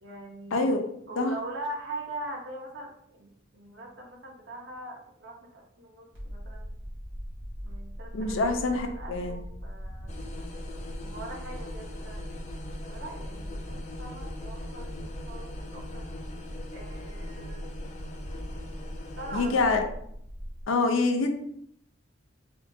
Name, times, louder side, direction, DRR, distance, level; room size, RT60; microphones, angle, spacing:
voice 1, 0.0-6.8 7.6-10.2 11.0-12.2 12.9-16.1 16.7-17.9 19.2-19.9, right 2 dB, 60° right, 0 dB, 0.7 m, -42 dB
sound 1, 6.1-20.6, equal, 75° right, 1.5 m, -40 dB
voice 2, 8.1-9.4 19.3-19.8 20.7-21.3, left 3 dB, 90° left, 5 dB, 0.5 m, -25 dB
sound 2, 10.1-19.6, left 2 dB, 35° left, 0.4 m, -44 dB
4.4 x 2.2 x 2.6 m, 0.70 s
head